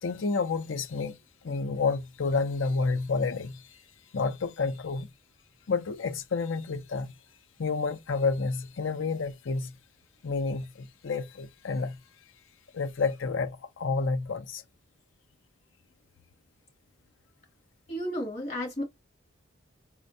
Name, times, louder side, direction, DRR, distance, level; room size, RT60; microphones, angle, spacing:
voice 1, 0.0-1.2 1.4-3.8 4.1-5.1 5.7-7.1 7.6-9.8 10.2-12.0 12.7-14.6, left 4 dB, 70° left, 0.5 m, -30 dB
voice 2, 17.9-18.8, equal, 30° left, 1.7 m, -32 dB
4.2 x 2.2 x 2.6 m
head